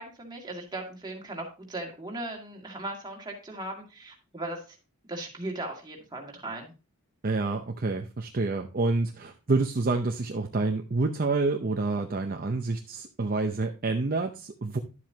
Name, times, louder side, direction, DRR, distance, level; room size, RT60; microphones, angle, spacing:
voice 1, 0.0-4.8 5.1-6.7, right 2 dB, 20° right, 0 dB, 2.2 m, -38 dB
voice 2, 7.2-14.8, right 3 dB, 40° right, 4 dB, 0.6 m, -28 dB
11.0 x 7.5 x 2.8 m, 0.30 s
head